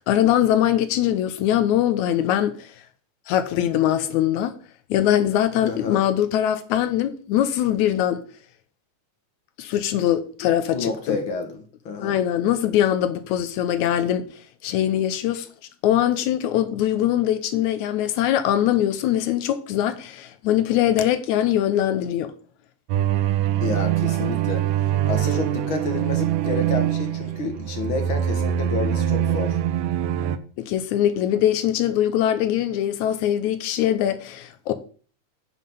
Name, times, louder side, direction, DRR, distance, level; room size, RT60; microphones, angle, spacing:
voice 1, 0.0-2.7 3.3-4.5 4.9-8.2 9.6-11.2 12.0-14.3 14.6-15.5 15.8-22.3 30.6-34.7, left 11 dB, 75° left, 1.9 m, -22 dB
voice 2, 5.6-6.0 10.7-12.2 23.6-24.7 25.0-29.6, left 4 dB, 50° left, 1.8 m, -30 dB
sound 1, 22.9-30.4, right 11 dB, 75° right, 1.8 m, -23 dB
9.5 x 5.4 x 5.4 m
omnidirectional pair, 3.6 m